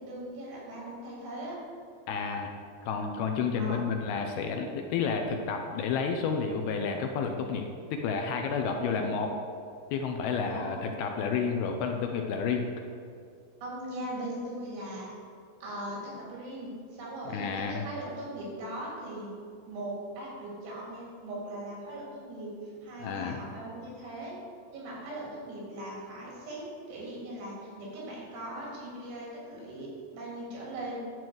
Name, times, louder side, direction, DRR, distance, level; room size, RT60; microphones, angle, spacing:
voice 1, 0.0-1.6 3.6-3.8 8.6-9.3 10.4-10.9 13.6-15.1 15.6-19.3 19.7-24.3 24.7-31.0, right 1 dB, 80° right, -5 dB, 5.1 m, -40 dB
voice 2, 2.1-2.5 2.8-9.3 9.9-12.7 17.3-17.8 23.0-23.4, left 5 dB, 80° left, 4 dB, 2.5 m, -30 dB
11.0 x 4.6 x 7.7 m, 2.4 s
omnidirectional pair, 4.8 m